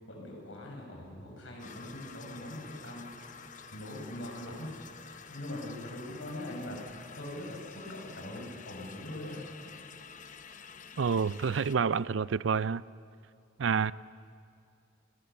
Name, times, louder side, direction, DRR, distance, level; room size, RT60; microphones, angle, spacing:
voice 1, 0.1-3.4 3.7-9.5, left 1 dB, 85° left, 6.4 m, -42 dB
sound 1, 1.6-11.8, left 6 dB, 45° left, 0.8 m, -49 dB
voice 2, 11.0-12.8 13.6-13.9, right 6 dB, 85° right, 0.5 m, -28 dB
29.5 x 19.0 x 7.0 m
head